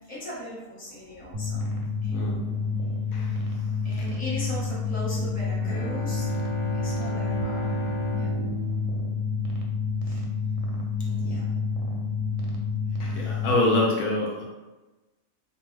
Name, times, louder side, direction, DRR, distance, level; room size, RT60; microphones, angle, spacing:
voice 1, 0.1-1.6 2.0-2.6 3.8-6.3 6.7-7.6 8.2-8.4 10.0-10.2 11.0-11.4, left 1 dB, 10° left, -8 dB, 0.7 m, -38 dB
sound 1, 1.3-13.5, left 4 dB, 70° right, 0.8 m, -29 dB
Bowed string instrument, 5.5-10.0, right 2 dB, 60° left, 0.6 m, -35 dB
voice 2, 13.0-14.5, left 2 dB, 75° left, -2 dB, 1.0 m, -25 dB
2.5 x 2.2 x 3.2 m, 1.1 s
omnidirectional pair, 1.6 m